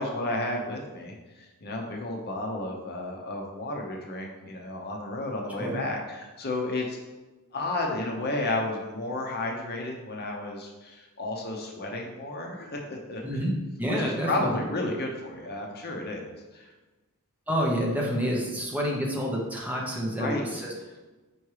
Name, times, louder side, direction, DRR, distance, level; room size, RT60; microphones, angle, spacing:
voice 1, 0.0-7.0 7.5-13.4 13.9-16.7 20.0-20.6, left 2 dB, 45° left, 1 dB, 0.8 m, -32 dB
voice 2, 13.2-14.6 17.5-20.7, equal, 5° right, -3 dB, 0.9 m, -28 dB
4.7 x 4.3 x 4.8 m, 1.2 s
head